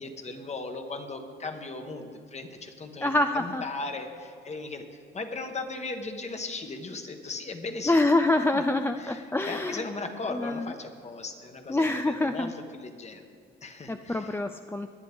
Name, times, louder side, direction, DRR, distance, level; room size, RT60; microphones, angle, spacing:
voice 1, 0.0-8.0 8.5-8.6 9.0-13.2 13.6-14.4, left 3 dB, 35° left, 6 dB, 1.3 m, -37 dB
voice 2, 3.0-3.6 7.9-9.8 10.3-10.7 11.7-12.5 13.9-14.9, left 2 dB, 10° left, 7 dB, 0.4 m, -26 dB
18.5 x 10.5 x 3.6 m, 2.3 s
cardioid pair, 90°, 20 cm